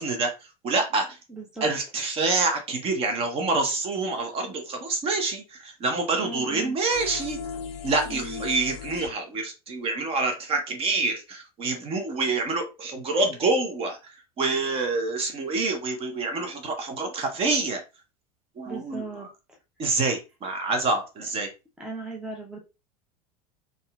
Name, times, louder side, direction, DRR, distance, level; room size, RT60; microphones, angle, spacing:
voice 1, 0.0-1.2 1.6-7.4 7.8-17.8 18.6-19.2 19.8-21.5, right 3 dB, 30° right, 5 dB, 0.9 m, -27 dB
voice 2, 1.3-1.7 6.2-6.8 8.1-8.4 18.6-19.3 21.8-22.6, right 3 dB, 5° right, -1 dB, 0.6 m, -37 dB
sound 1, 6.9-9.1, left 6 dB, 45° left, 0.5 m, -37 dB
4.0 x 2.5 x 2.3 m, 0.28 s
figure-of-eight pair, 80°, 20 cm